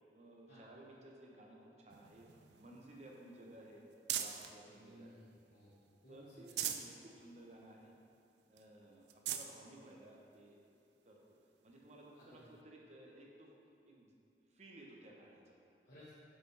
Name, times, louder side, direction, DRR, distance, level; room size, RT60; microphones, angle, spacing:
voice 1, 0.1-2.3 2.6-3.8 4.1-5.2 6.1-7.9 8.5-10.6 11.0-11.4 11.6-13.5 13.8-14.1 14.5-15.7, right 1 dB, 40° right, -2 dB, 0.9 m, -57 dB
sound 1, 1.9-4.6 5.1-5.9 6.3-6.9 7.4-7.5 7.8-7.9 8.6-8.7 9.0-9.5 10.3-10.4 12.2-12.3, right 10 dB, 70° right, 0.4 m, -42 dB
voice 2, 4.7-5.8 6.0-6.8 12.1-12.4 15.8-16.1, equal, 55° left, -10 dB, 1.2 m, -59 dB
8.9 x 5.5 x 3.4 m, 2.4 s
head